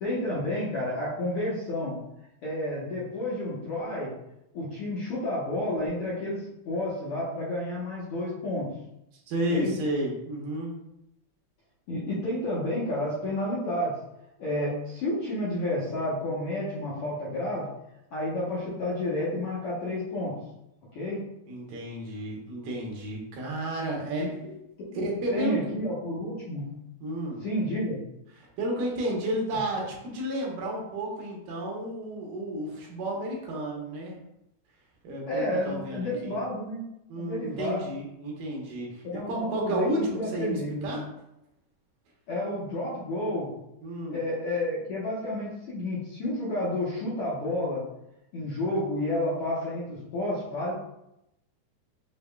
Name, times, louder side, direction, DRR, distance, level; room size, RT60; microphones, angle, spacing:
voice 1, 0.0-1.9 2.4-4.1 4.5-6.4 6.7-8.7 9.5-9.7 11.9-13.9 14.4-17.6 18.1-20.3 20.9-21.2 24.2-24.5 24.8-25.0 25.3-26.7 27.4-28.0 35.3-36.8 37.2-37.8 39.0-40.9 42.3-43.5 44.1-47.8 48.3-50.7, left 1 dB, 65° left, -8 dB, 1.5 m, -30 dB
voice 2, 9.3-10.7 21.5-24.3 24.9-25.6 27.0-27.4 28.4-34.1 35.0-36.4 37.1-41.0 43.8-44.2, right 1 dB, 80° right, -2 dB, 2.6 m, -32 dB
6.8 x 2.8 x 2.3 m, 0.83 s
omnidirectional pair, 3.7 m